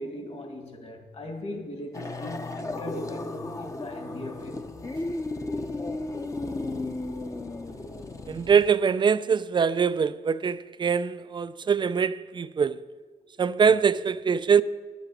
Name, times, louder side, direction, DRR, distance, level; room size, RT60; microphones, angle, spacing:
voice 1, 0.0-4.6, left 1 dB, 40° left, 2.0 m, -38 dB
sound 1, 1.9-8.7, left 2 dB, 20° left, 0.8 m, -34 dB
voice 2, 8.3-12.8 13.4-14.6, right 6 dB, 30° right, 0.4 m, -23 dB
9.8 x 8.1 x 8.4 m
cardioid pair, 115°, 16 cm